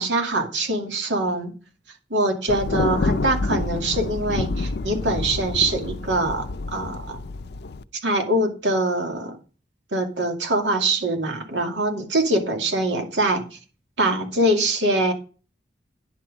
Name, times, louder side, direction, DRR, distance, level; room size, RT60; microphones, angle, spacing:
voice 1, 0.0-1.5 2.1-7.2 8.0-9.4 9.9-13.6 14.0-15.1, right 1 dB, 75° right, 3 dB, 2.3 m, -23 dB
Thunder, 2.5-7.8, left 3 dB, 60° left, 0.5 m, -28 dB
10.5 x 6.1 x 5.0 m, 0.35 s
head